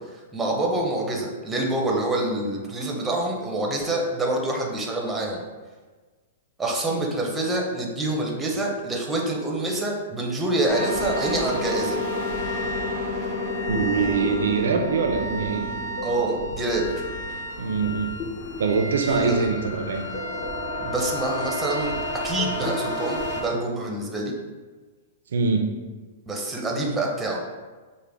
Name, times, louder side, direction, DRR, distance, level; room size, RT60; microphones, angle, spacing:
voice 1, 0.0-5.4 6.6-12.0 16.0-17.1 19.0-19.5 20.8-24.3 26.3-27.4, right 2 dB, 10° right, -1 dB, 0.6 m, -26 dB
sound 1, 10.7-23.4, left 1 dB, 45° left, 0.8 m, -30 dB
voice 2, 13.7-15.7 17.6-18.1 18.6-20.1 25.3-25.7, right 5 dB, 85° right, 3 dB, 0.4 m, -23 dB
5.0 x 2.1 x 3.4 m, 1.3 s
hypercardioid pair, 155°, 0 cm